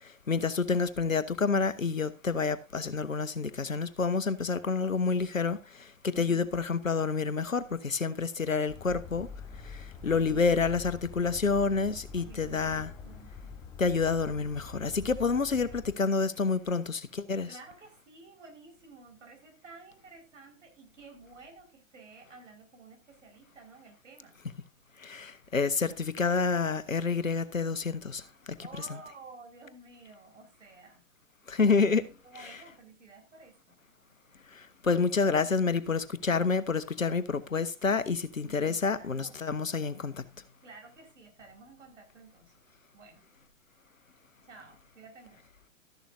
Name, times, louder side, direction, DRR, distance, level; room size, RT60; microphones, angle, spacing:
voice 1, 0.3-5.6 6.2-9.3 10.0-12.9 13.8-17.5 25.0-28.2 28.8-28.9 31.5-32.0 34.8-40.1, left 4 dB, 80° left, 1.2 m, -28 dB
voice 2, 6.1-6.5 10.0-10.6 12.1-13.5 17.5-24.4 28.6-31.1 32.2-33.8 38.5-39.4 40.6-42.5 42.9-43.2 44.5-45.5, right 4 dB, 65° right, 5.1 m, -52 dB
sound 1, 8.7-16.0, left 5 dB, 10° left, 0.7 m, -45 dB
13.0 x 11.0 x 2.7 m
figure-of-eight pair, 115°, 40 cm